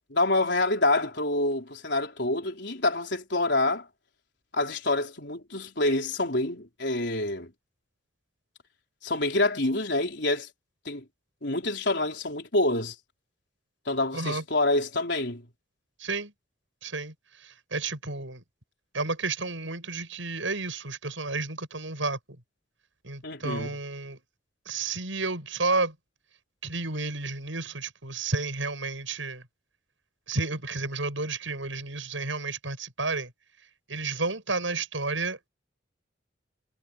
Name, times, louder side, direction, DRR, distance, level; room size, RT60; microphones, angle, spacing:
voice 1, 0.1-3.9 4.5-7.5 9.0-10.5 10.8-11.0 11.4-12.9 13.9-15.4 23.2-23.8, left 2 dB, 65° left, 4.4 m, -27 dB
voice 2, 14.1-14.4 16.0-16.3 16.8-18.4 18.9-22.2 23.0-24.2 24.7-25.9 26.6-29.4 30.3-33.3 33.9-35.5, right 3 dB, 80° right, 7.5 m, -31 dB
head